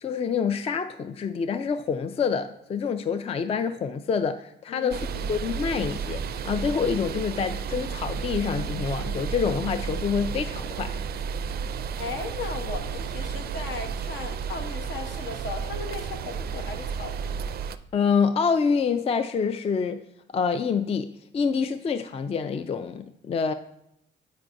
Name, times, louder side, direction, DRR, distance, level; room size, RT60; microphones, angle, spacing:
voice 1, 0.0-5.0 5.3-10.9 17.9-20.0 20.3-21.1 21.3-23.5, left 6 dB, 30° left, 10 dB, 0.4 m, -26 dB
voice 2, 4.7-5.4 12.0-17.4, left 4 dB, 70° left, 5 dB, 1.0 m, -37 dB
sound 1, 4.9-17.8, right 6 dB, 50° right, 0.4 m, -32 dB
8.3 x 6.0 x 2.6 m, 0.79 s
cardioid pair, 90°, 20 cm